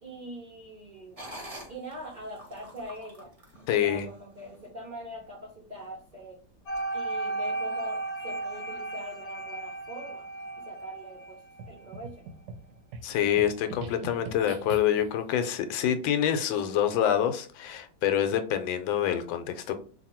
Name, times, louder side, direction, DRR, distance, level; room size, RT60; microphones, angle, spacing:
voice 1, 0.0-1.2 1.7-3.3 3.8-6.4 6.9-10.3 10.6-11.4 11.7-12.3, equal, 55° right, -1 dB, 0.5 m, -42 dB
sound 1, 1.2-4.6 5.1-5.2 5.7-6.1 6.7-6.8, equal, 30° right, 0.7 m, -46 dB
voice 2, 3.7-4.1 13.0-19.8, left 9 dB, 85° left, 8 dB, 1.3 m, -26 dB
sound 2, 6.7-11.8, right 2 dB, 50° left, 0.7 m, -35 dB
sound 3, 11.6-15.2, right 3 dB, 75° right, 1.1 m, -43 dB
2.9 x 2.6 x 4.2 m, 0.40 s
omnidirectional pair, 2.1 m